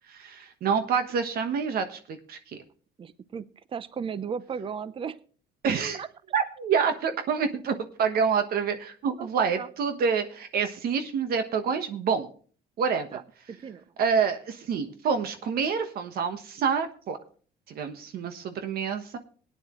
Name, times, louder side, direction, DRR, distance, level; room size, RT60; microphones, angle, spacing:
voice 1, 0.1-2.4 5.6-6.0 6.3-12.3 12.8-13.1 14.0-17.2 17.7-19.2, right 6 dB, 65° right, 8 dB, 1.3 m, -27 dB
voice 2, 3.0-5.2 5.9-6.1 9.1-9.7 13.1-13.2 13.5-13.8, right 6 dB, 30° right, 16 dB, 0.7 m, -36 dB
17.5 x 10.0 x 3.1 m, 0.41 s
cardioid pair, 110°, 17 cm